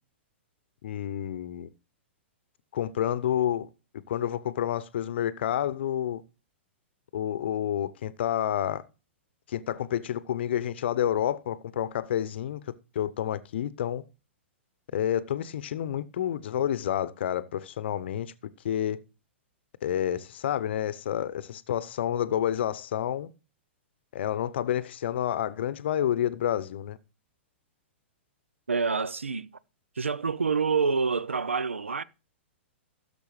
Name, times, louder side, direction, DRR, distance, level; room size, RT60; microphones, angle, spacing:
voice 1, 0.8-1.7 2.7-3.7 4.1-6.2 7.1-8.8 9.5-12.6 12.9-14.0 14.9-18.3 18.6-19.0 19.8-23.3 24.1-27.0, left 10 dB, 60° left, 0.8 m, -29 dB
voice 2, 28.7-29.5 30.0-32.0, right 5 dB, 85° right, 0.5 m, -27 dB
16.5 x 6.8 x 3.2 m
figure-of-eight pair, 110°, 7 cm